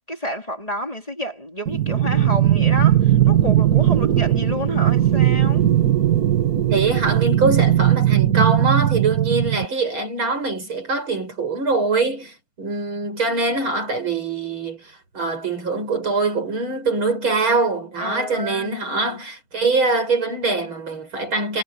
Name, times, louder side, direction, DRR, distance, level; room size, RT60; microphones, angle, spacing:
voice 1, 0.0-5.6 18.0-19.2, equal, 15° left, 3.6 m, -30 dB
sound 1, 1.7-9.7, right 12 dB, 50° right, 1.8 m, -18 dB
voice 2, 6.7-21.6, right 3 dB, 80° right, 7.3 m, -23 dB
omnidirectional pair, 2.2 m